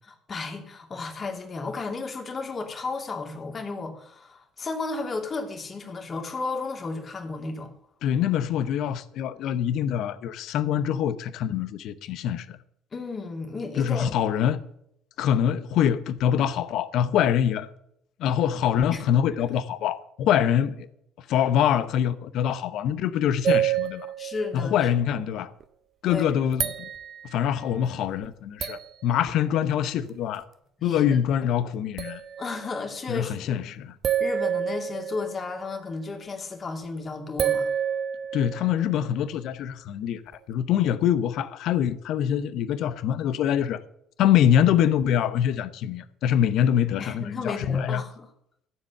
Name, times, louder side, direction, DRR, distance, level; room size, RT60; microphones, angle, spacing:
voice 1, 0.0-7.7 12.9-14.2 18.9-19.0 19.4-19.5 24.2-24.9 26.0-26.3 30.8-31.0 32.4-33.8 34.2-37.7 47.0-48.3, left 3 dB, 40° left, 2.7 m, -33 dB
voice 2, 8.0-12.6 13.7-14.6 15.2-17.7 18.2-20.9 21.3-24.1 24.5-25.5 26.0-26.9 27.2-30.4 30.8-32.2 33.1-33.9 38.3-40.2 40.5-43.8 44.2-48.0, left 9 dB, 65° left, 0.8 m, -24 dB
sound 1, 23.4-25.0 25.6-25.7 26.3-27.4 28.2-28.3 28.6-28.9 31.3-31.4 32.0-32.8 34.0-35.7 37.4-39.0 40.3-40.4, right 9 dB, 50° right, 0.8 m, -28 dB
14.0 x 7.6 x 6.7 m
hypercardioid pair, 50°, 0 cm